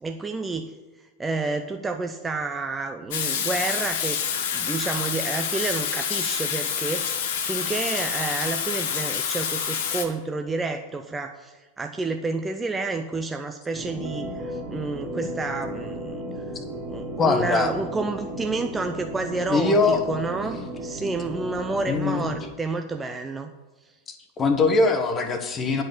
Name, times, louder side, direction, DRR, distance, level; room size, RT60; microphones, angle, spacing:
voice 1, 0.0-4.2 4.5-16.4 16.9-23.5 23.8-23.9, right 3 dB, 10° right, 6 dB, 0.5 m, -30 dB
Water tap faucet / Sink (filling or washing), 3.1-10.1, left 7 dB, 55° left, 1.0 m, -27 dB
sound 1, 13.7-22.4, right 1 dB, 35° right, 2.0 m, -34 dB
voice 2, 17.2-17.7 19.5-20.0 21.9-22.3 24.4-25.8, left 3 dB, 20° left, 6 dB, 1.2 m, -21 dB
10.5 x 5.4 x 7.0 m, 1.3 s
figure-of-eight pair, 90°, 0 cm